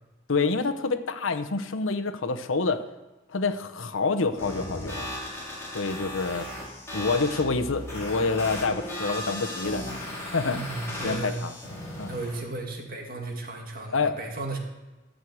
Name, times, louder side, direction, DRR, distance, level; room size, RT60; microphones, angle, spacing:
voice 1, 0.3-2.8 3.3-5.1 5.7-6.5 6.9-10.6 11.0-11.5 12.0-12.1 13.9-14.1, left 4 dB, 80° left, 9 dB, 0.9 m, -27 dB
sound 1, 4.4-12.4, left 1 dB, 15° left, 4.7 m, -36 dB
voice 2, 10.5-11.4 12.1-14.6, right 2 dB, 45° right, 1 dB, 2.1 m, -35 dB
13.0 x 6.4 x 7.8 m, 1.1 s
head